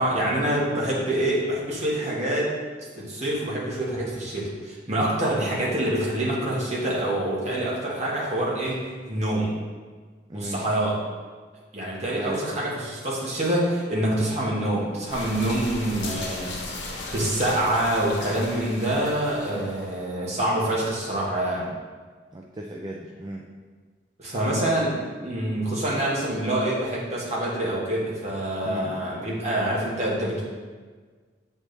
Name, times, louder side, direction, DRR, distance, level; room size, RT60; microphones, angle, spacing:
voice 1, 0.0-2.5 3.0-8.8 9.1-9.5 10.3-10.9 11.7-16.5 17.1-21.7 24.2-24.9 25.2-30.4, right 1 dB, 40° right, -5 dB, 1.5 m, -26 dB
voice 2, 10.3-10.6 12.1-12.4 22.3-23.4 28.6-29.1, right 1 dB, 25° right, -1 dB, 0.4 m, -36 dB
sound 1, 15.1-19.9, left 2 dB, 85° left, 1.1 m, -37 dB
7.1 x 4.5 x 3.4 m, 1.5 s
head